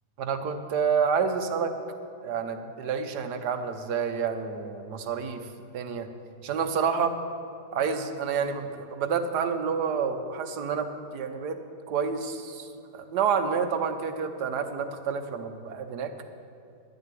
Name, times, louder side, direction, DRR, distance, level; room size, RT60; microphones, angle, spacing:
voice 1, 0.2-1.7 2.2-5.5 5.7-6.1 6.4-7.1 7.7-11.6 11.9-12.7 12.9-16.1, right 6 dB, 80° right, 7 dB, 1.4 m, -29 dB
11.5 x 6.6 x 9.0 m, 2.5 s
omnidirectional pair, 1.8 m